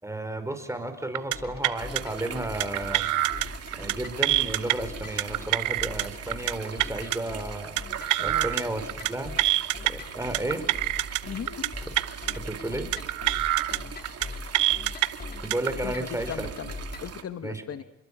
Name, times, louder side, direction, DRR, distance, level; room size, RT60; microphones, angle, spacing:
voice 1, 0.0-3.1 3.7-7.8 8.2-9.4 9.9-10.7 11.8-11.9 12.3-12.9 15.4-16.5 17.4-17.6, right 1 dB, 10° right, 7 dB, 5.0 m, -33 dB
sound 1, 1.2-1.4 1.6-2.0 2.6-3.5 3.7-3.9 4.2-4.7 5.2-6.0 6.3-6.5 6.8-7.2 7.8-8.6 8.9-9.1 9.4-9.9 10.3-11.2 11.5-11.7 12.0-12.3 12.9-13.8 14.1-14.3 14.5-15.1 15.5-15.7, right 16 dB, 90° right, 0.9 m, -25 dB
sound 2, 1.3-17.2, left 3 dB, 30° left, 2.8 m, -42 dB
sound 3, 1.8-17.2, right 8 dB, 55° right, 2.4 m, -41 dB
voice 2, 11.3-11.7 15.8-16.7 17.0-17.8, left 8 dB, 50° left, 11 dB, 1.4 m, -37 dB
28.5 x 22.0 x 8.6 m, 0.83 s
cardioid pair, 90°, 30 cm